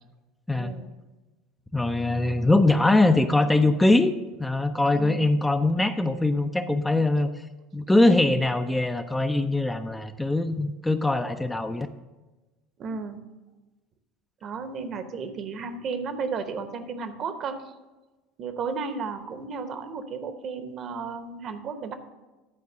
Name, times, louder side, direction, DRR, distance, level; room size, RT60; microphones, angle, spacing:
voice 1, 0.6-0.9 4.9-5.3 12.8-13.2 14.4-17.6 18.4-21.9, right 5 dB, 45° right, 9 dB, 0.9 m, -33 dB
voice 2, 1.7-7.3 7.7-11.9, left 2 dB, 10° left, 8 dB, 0.5 m, -22 dB
11.0 x 4.6 x 6.5 m, 1.2 s
figure-of-eight pair, 70°, 0 cm